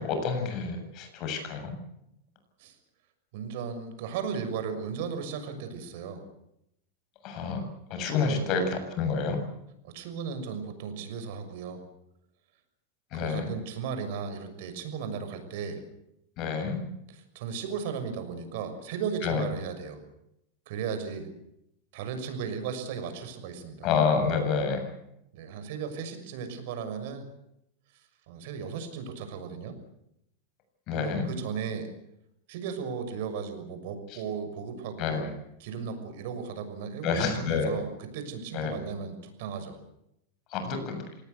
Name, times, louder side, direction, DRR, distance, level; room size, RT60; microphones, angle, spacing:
voice 1, 0.0-1.8 7.2-7.6 7.9-9.4 13.1-13.5 16.4-16.8 19.2-19.4 23.8-24.9 30.9-31.3 35.0-35.3 37.0-37.7 38.5-38.8 40.5-41.0, left 5 dB, 40° left, 6 dB, 7.5 m, -28 dB
voice 2, 3.3-6.2 8.2-8.5 9.8-11.8 13.1-15.8 17.1-20.0 20.7-21.3 21.9-23.9 25.3-27.2 27.9-29.8 30.9-31.9 32.5-35.3 35.6-39.8, right 6 dB, 65° right, 8 dB, 6.4 m, -36 dB
26.0 x 18.5 x 8.3 m, 0.81 s
supercardioid pair, 145°, 0 cm